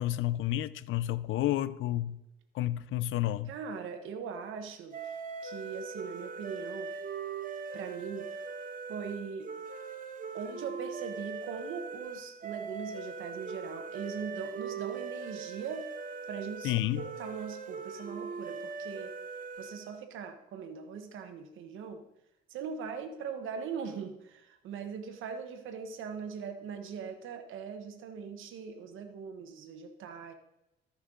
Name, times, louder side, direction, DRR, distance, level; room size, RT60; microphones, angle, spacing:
voice 1, 0.0-2.2 2.5-3.5 16.6-17.0, left 14 dB, 80° left, 0.5 m, -30 dB
voice 2, 3.5-5.1 5.4-6.9 7.7-8.4 8.9-9.5 10.3-15.9 16.3-19.1 19.6-22.0 22.5-30.3, right 6 dB, 85° right, 1.2 m, -40 dB
sound 1, 4.9-20.0, right 5 dB, 45° right, 1.3 m, -41 dB
14.0 x 5.7 x 3.8 m
cardioid pair, 90°, 20 cm